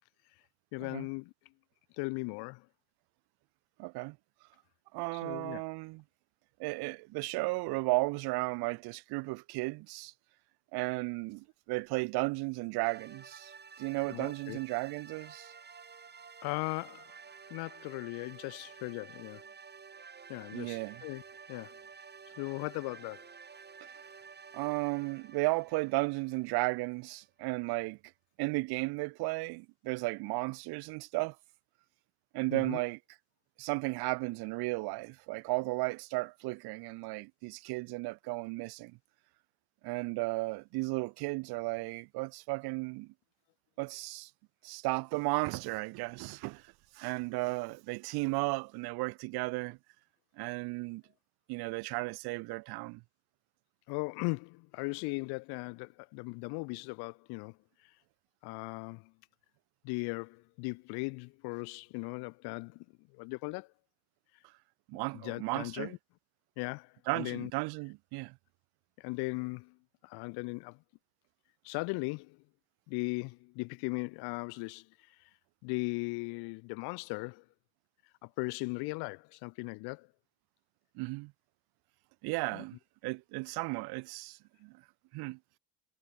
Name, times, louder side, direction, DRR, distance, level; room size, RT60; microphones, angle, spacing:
voice 1, 0.7-1.3 1.9-2.7 5.2-5.6 14.1-14.6 16.4-17.1 17.5-19.4 20.3-21.2 21.5-21.8 22.4-23.3 32.5-32.8 53.9-57.6 58.4-59.1 59.8-62.8 63.1-63.7 65.1-66.0 66.6-67.5 69.0-69.8 70.0-70.8 71.6-72.4 72.9-75.1 75.6-77.4 78.2-80.1 82.5-82.6, left 29 dB, 75° left, 2.8 m, -38 dB
voice 2, 3.8-4.2 4.9-6.0 6.6-10.1 10.7-15.5 20.5-21.0 23.8-23.9 24.5-28.0 28.4-31.4 32.3-33.0 33.6-39.0 39.8-43.1 43.8-44.3 44.6-49.8 50.4-51.0 51.5-53.0 64.9-65.9 67.1-68.4 80.9-81.3 82.2-82.8 83.0-84.8 85.1-85.4, right 25 dB, 70° right, 7.5 m, -34 dB
sound 1, 12.8-27.1, right 5 dB, 25° right, 7.0 m, -52 dB
supercardioid pair, 105°, 39 cm